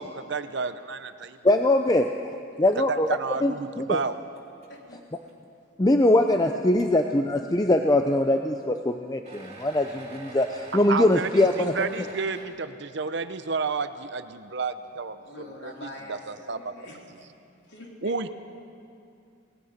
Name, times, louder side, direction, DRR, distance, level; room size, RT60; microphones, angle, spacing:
voice 1, 0.0-1.4 2.9-4.2 10.9-15.7 16.1-16.7 18.0-18.3, right 4 dB, 60° right, 11 dB, 0.8 m, -31 dB
voice 2, 1.4-2.1 2.6-3.1 3.4-4.0 5.8-12.0, left 1 dB, 20° left, 5 dB, 0.5 m, -22 dB
sound 1, 4.3-4.8 5.2-5.3 6.0-6.1 6.8-6.9 9.2-12.4, right 2 dB, 30° right, 3.0 m, -46 dB
voice 3, 4.7-5.0 15.2-17.3 17.7-18.3, left 1 dB, 55° left, -2 dB, 3.8 m, -44 dB
28.5 x 18.5 x 5.2 m, 2.5 s
head